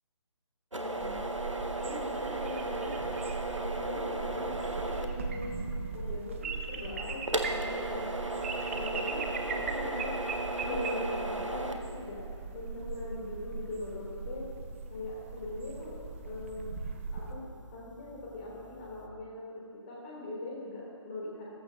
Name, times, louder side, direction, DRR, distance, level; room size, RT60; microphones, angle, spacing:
sound 1, 0.7-19.1, right 2 dB, 90° right, 1.0 m, -38 dB
voice 1, 0.8-1.2 1.8-3.0 3.5-5.6 5.9-8.1 8.7-12.2 12.5-14.5 14.9-15.9 16.2-16.8 17.1-17.4 17.7-21.5, left 2 dB, 25° left, -5 dB, 3.1 m, -41 dB
sound 2, 1.0-17.3, right 4 dB, 25° right, 0.6 m, -39 dB
14.5 x 13.0 x 2.8 m, 2.2 s
figure-of-eight pair, 145°, 16 cm